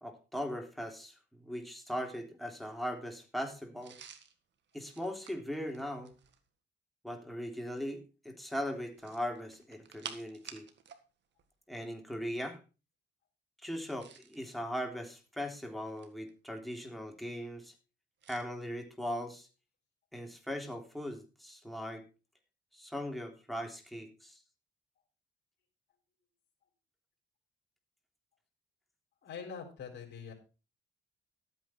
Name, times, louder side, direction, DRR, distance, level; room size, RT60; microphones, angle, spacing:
voice 1, 0.0-4.0 4.7-6.1 7.0-10.7 11.7-12.6 13.6-17.7 18.3-19.5 20.1-22.1 22.7-24.4, equal, ahead, 2 dB, 3.3 m, -39 dB
sound 1, 3.8-6.5 8.9-11.0 11.3-11.5 13.7-14.4 15.2-16.3 18.2-18.5, right 8 dB, 65° right, 1.9 m, -51 dB
voice 2, 29.2-30.3, left 6 dB, 60° left, -2 dB, 4.2 m, -44 dB
12.5 x 9.1 x 4.5 m, 0.33 s
cardioid pair, 90°, 20 cm